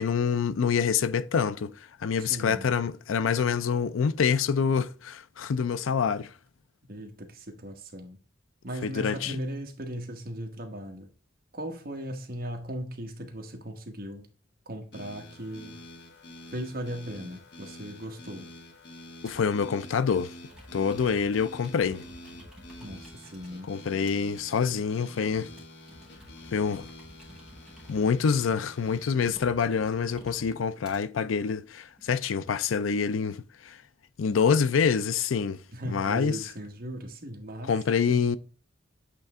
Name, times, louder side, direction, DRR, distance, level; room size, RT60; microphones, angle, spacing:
voice 1, 0.0-1.7 2.0-6.3 8.8-9.4 19.2-20.3 20.7-22.0 23.7-25.5 26.5-26.9 27.9-33.8 34.2-35.6 35.8-36.4 37.7-38.4, left 6 dB, 85° left, 0.4 m, -26 dB
voice 2, 2.2-2.7 6.9-8.2 8.6-11.1 11.5-14.3 14.6-15.8 16.5-18.5 22.8-23.7 35.7-37.7 38.1-38.2, equal, 45° right, 1.2 m, -38 dB
sound 1, 14.9-29.0, left 1 dB, 60° left, 1.2 m, -48 dB
Computer keyboard, 19.3-19.6 20.3-23.5 24.1-31.0 31.7-32.2, equal, 5° right, 1.9 m, -51 dB
8.2 x 3.3 x 3.5 m
head